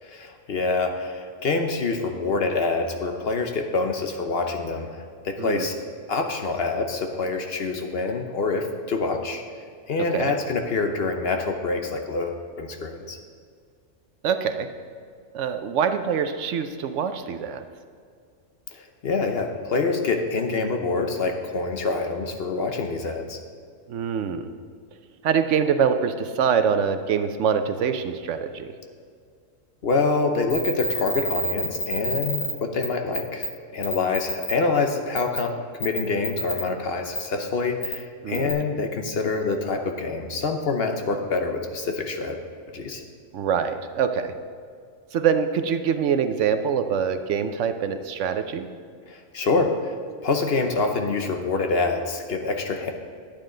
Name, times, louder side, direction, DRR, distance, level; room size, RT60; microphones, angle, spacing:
voice 1, 0.0-5.8 6.1-9.4 9.9-13.2 18.7-23.4 29.8-42.4 42.7-43.0 49.1-49.9 50.2-52.9, left 3 dB, 55° left, 4 dB, 1.0 m, -26 dB
voice 2, 10.0-10.4 14.2-14.7 15.3-17.6 23.9-24.5 25.2-28.7 38.2-38.5 43.3-44.3 45.1-48.7, right 7 dB, 75° right, 9 dB, 0.9 m, -24 dB
sound 1, 30.5-32.5 32.8-32.9 33.1-33.5 33.8-34.5 35.2-35.4 35.8-36.6 37.1-37.2 37.8-37.9 38.3-38.5, left 1 dB, 70° left, 1.9 m, -28 dB
11.5 x 8.9 x 3.8 m, 2.2 s
omnidirectional pair, 1.3 m